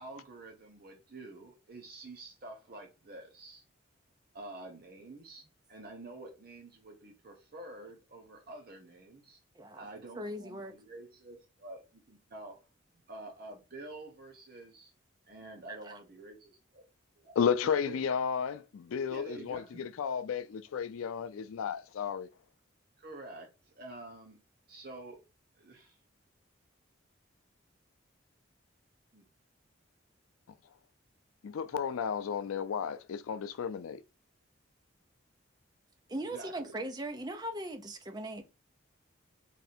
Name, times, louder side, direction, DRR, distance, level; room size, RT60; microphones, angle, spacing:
voice 1, 0.0-3.6 4.3-5.4 5.7-9.4 9.7-12.6 13.1-14.9 15.3-16.9 17.2-17.4 17.6-18.0 19.1-19.8 23.0-24.4 24.7-25.2 25.6-26.0 29.1-29.2 36.3-36.8, right 2 dB, 45° right, 0.8 m, -48 dB
voice 2, 9.6-9.9 10.2-10.7 15.7-16.0 36.1-38.4, right 1 dB, 20° right, 0.5 m, -39 dB
voice 3, 17.4-22.3 31.4-34.0, left 7 dB, 90° left, 0.4 m, -33 dB
3.3 x 2.7 x 4.1 m
head